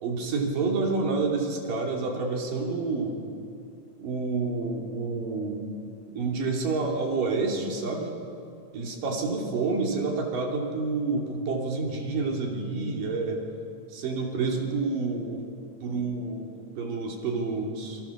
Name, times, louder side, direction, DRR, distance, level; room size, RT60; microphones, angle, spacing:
voice 1, 0.0-3.2 4.0-5.6 6.1-8.1 8.7-13.4 13.9-15.4 15.8-16.5 16.8-18.0, right 3 dB, 90° right, 1 dB, 4.6 m, -28 dB
28.0 x 23.5 x 7.3 m, 2.5 s
omnidirectional pair, 3.7 m